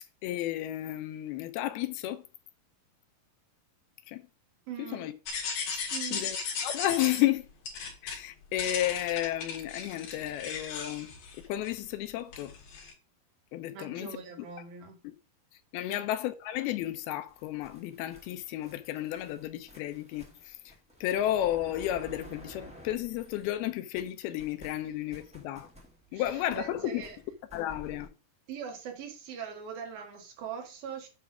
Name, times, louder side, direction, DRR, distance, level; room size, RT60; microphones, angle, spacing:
voice 1, 0.2-2.3 4.1-4.3 4.8-5.1 5.7-6.4 6.6-7.5 8.0-12.5 13.5-14.2 15.0-15.1 15.7-20.7 21.0-25.7 26.1-27.0 27.5-28.1, left 13 dB, 90° left, 2.8 m, -32 dB
voice 2, 4.7-5.1 5.9-6.3 13.7-15.0 15.9-16.0 26.1-27.2 28.5-31.1, right 7 dB, 75° right, 3.6 m, -41 dB
sound 1, 5.3-7.2 7.7-8.2 8.6-11.9 12.3-12.9, left 5 dB, 65° left, 3.3 m, -36 dB
sound 2, 17.3-23.7 23.9-28.1, right 1 dB, 5° right, 0.8 m, -52 dB
9.2 x 3.4 x 6.0 m
omnidirectional pair, 4.3 m